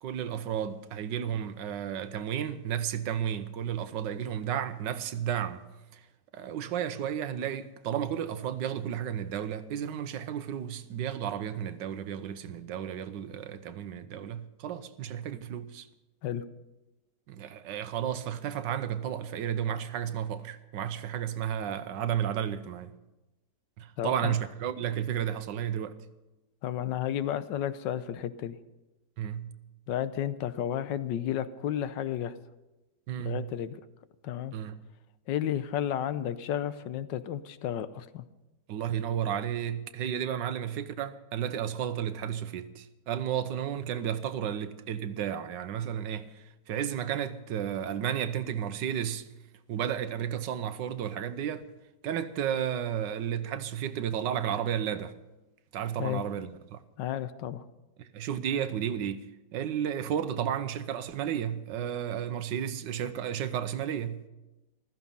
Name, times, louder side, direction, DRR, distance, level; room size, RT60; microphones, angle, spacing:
voice 1, 0.0-5.7 5.9-6.0 6.3-15.9 17.3-22.9 23.8-26.0 29.2-29.5 33.1-33.5 34.5-34.8 38.7-49.3 49.7-51.6 52.0-55.1 55.7-56.8 58.0-59.3 59.5-64.3, right 9 dB, 80° right, 1.5 m, -33 dB
voice 2, 24.0-24.3 26.6-28.6 29.9-32.4 33.2-33.8 34.2-34.5 35.3-38.2 56.0-56.2 57.0-57.6, left 10 dB, 90° left, 1.4 m, -32 dB
15.0 x 13.5 x 5.5 m
omnidirectional pair, 1.9 m